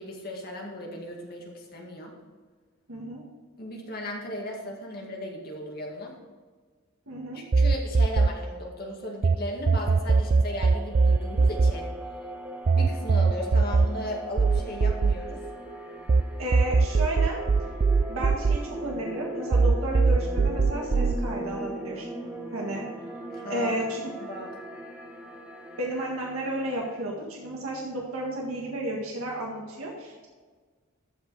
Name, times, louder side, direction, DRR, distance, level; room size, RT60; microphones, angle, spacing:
voice 1, 0.0-2.1 3.6-6.1 7.3-11.9 12.7-15.4 23.3-23.8 24.3-24.6, left 1 dB, 45° left, -1 dB, 2.1 m, -36 dB
voice 2, 2.9-3.2 7.1-7.4 16.4-17.4 18.1-22.1 22.5-22.9 23.5-24.1 25.8-30.3, right 1 dB, 75° right, -2 dB, 1.9 m, -32 dB
sound 1, 7.5-9.4 9.7-16.2 16.5-19.2 19.5-21.2, right 4 dB, 35° right, 0.3 m, -22 dB
sound 2, 10.1-27.0, equal, 5° right, 1.0 m, -40 dB
14.0 x 5.2 x 4.8 m, 1.4 s
head